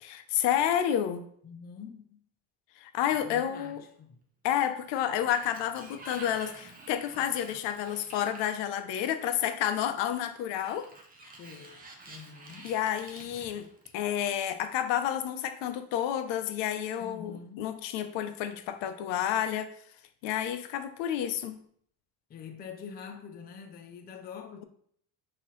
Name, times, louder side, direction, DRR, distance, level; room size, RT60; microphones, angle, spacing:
voice 1, 0.0-1.2 2.8-3.8 4.4-10.9 12.6-13.7 13.9-19.7 20.2-21.6, left 10 dB, 70° left, 0.6 m, -30 dB
voice 2, 1.4-2.2 3.1-4.2 11.4-12.7 17.0-17.9 22.3-24.6, left 6 dB, 25° left, 0.4 m, -46 dB
Sliding door, 4.7-9.3 10.5-14.2, right 2 dB, 20° right, 0.6 m, -50 dB
5.7 x 2.8 x 3.0 m
cardioid pair, 140°, 45 cm